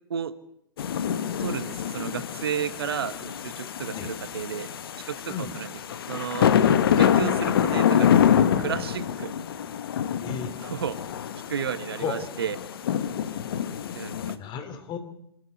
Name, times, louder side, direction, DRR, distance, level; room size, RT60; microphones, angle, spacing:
sound 1, 0.8-14.3, left 9 dB, 70° left, 1.4 m, -26 dB
voice 1, 1.4-4.7 5.1-5.7 6.1-6.5 7.0-9.3 10.6-11.0 11.5-12.6 13.9-14.3, right 7 dB, 75° right, 13 dB, 1.3 m, -32 dB
voice 2, 10.2-10.5 12.0-12.3 14.3-15.0, left 6 dB, 35° left, 9 dB, 3.3 m, -34 dB
26.5 x 12.0 x 8.4 m, 0.78 s
hypercardioid pair, 100°, 13 cm